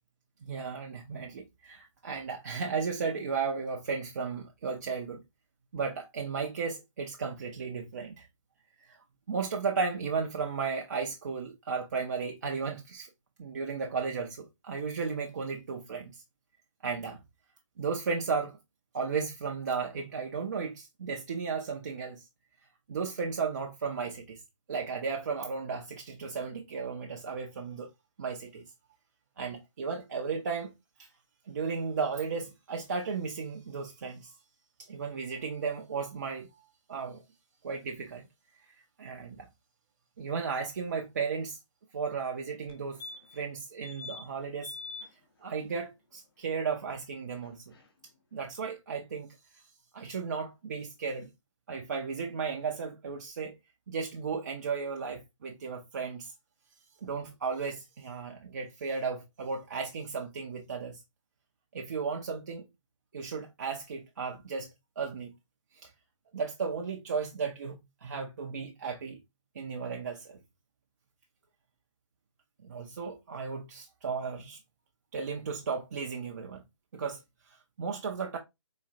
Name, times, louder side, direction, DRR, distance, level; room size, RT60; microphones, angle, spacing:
voice 1, 0.5-5.2 5.7-8.3 9.3-13.1 13.4-16.2 16.8-17.2 17.8-18.6 18.9-22.3 22.9-24.4 24.7-27.9 28.2-28.6 29.4-30.7 31.0-31.1 31.5-34.3 34.8-36.6 36.9-37.2 37.6-38.3 39.0-39.5 40.2-41.6 41.9-43.0 43.3-44.7 45.4-47.7 48.3-49.3 49.9-51.3 51.7-53.6 53.9-56.3 57.0-61.0 61.7-62.7 63.1-64.7 65.0-65.3 65.8-65.9 66.3-69.2 69.5-70.4 72.6-74.6 75.1-76.6 76.9-77.2 77.5-78.4, right 5 dB, 35° right, 0.4 m, -34 dB
sound 1, 42.7-42.8 43.0-43.5 43.8-44.2 44.6-45.1 47.4-47.5 47.7-47.8, left 4 dB, 50° left, 0.7 m, -43 dB
4.0 x 2.3 x 2.4 m
figure-of-eight pair, 150°, 16 cm